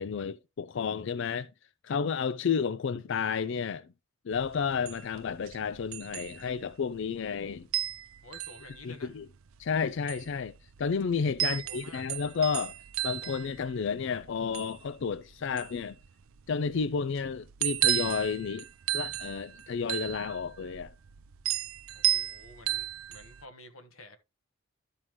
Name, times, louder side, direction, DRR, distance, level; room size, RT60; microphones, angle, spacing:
voice 1, 0.0-1.5 1.8-3.9 4.3-7.7 8.8-9.2 9.6-10.5 10.8-12.7 13.0-16.0 16.5-18.6 18.9-20.9, left 6 dB, 60° left, 0.4 m, -31 dB
sound 1, 4.3-23.4, right 14 dB, 80° right, 0.5 m, -35 dB
voice 2, 8.2-9.2 11.4-12.0 21.9-24.2, left 2 dB, 85° left, 1.4 m, -51 dB
12.5 x 5.6 x 3.0 m
head